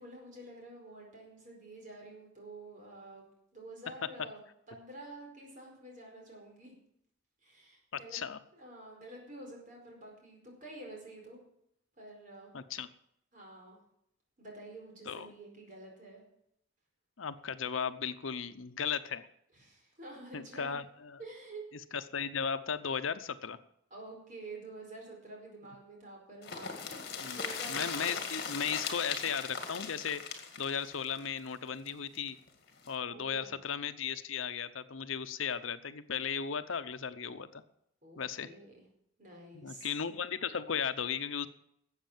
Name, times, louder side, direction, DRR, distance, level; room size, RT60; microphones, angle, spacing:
voice 1, 0.0-4.4 4.7-6.7 7.4-8.2 8.5-11.4 12.0-12.5 13.3-13.8 14.4-16.2 19.5-20.8 21.2-21.7 23.9-27.8 33.1-33.6 38.0-38.8 39.2-39.9, right 2 dB, 40° right, 0 dB, 4.7 m, -49 dB
voice 2, 12.5-12.9 15.1-15.3 17.2-19.3 20.3-21.2 21.9-23.6 27.2-30.2 30.6-32.4 32.9-37.6 38.2-38.5 39.5-41.5, left 7 dB, 80° left, 12 dB, 0.8 m, -36 dB
sound 1, 26.4-32.2 32.5-32.6 32.8-32.9, left 6 dB, 50° left, 2.0 m, -39 dB
13.0 x 8.1 x 7.4 m, 0.76 s
head